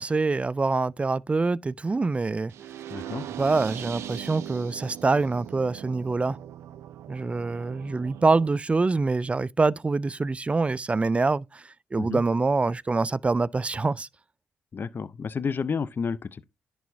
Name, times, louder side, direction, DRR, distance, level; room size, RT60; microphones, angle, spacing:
voice 1, 0.0-2.5 3.4-6.4 7.1-11.6 11.9-14.1, right 3 dB, 25° right, 0.3 m, -25 dB
sound 1, 2.5-8.5, right 11 dB, 80° right, 0.5 m, -40 dB
voice 2, 2.9-3.3 12.0-12.2 14.7-16.4, left 5 dB, 45° left, 0.5 m, -31 dB
10.5 x 4.6 x 2.7 m
supercardioid pair, 50°, 5 cm